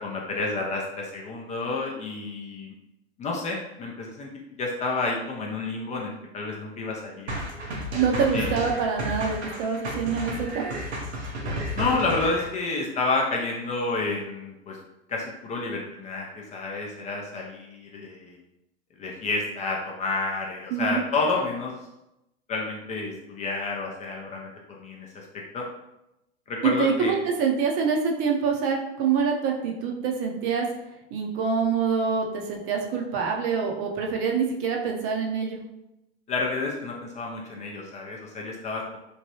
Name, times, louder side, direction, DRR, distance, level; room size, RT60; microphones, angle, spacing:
voice 1, 0.0-2.7 3.2-4.3 4.6-7.4 8.3-8.6 11.7-14.8 15.1-18.4 19.0-21.7 22.5-25.2 25.5-25.6 26.5-27.1 36.3-39.0, left 3 dB, 25° left, -1 dB, 0.4 m, -30 dB
sound 1, 7.3-12.5, equal, 90° right, 0.7 m, -32 dB
voice 2, 7.9-10.7 20.7-21.0 26.6-30.7 31.1-35.6, right 6 dB, 45° right, 1 dB, 0.6 m, -25 dB
3.1 x 2.2 x 2.8 m, 0.89 s
hypercardioid pair, 100°, 32 cm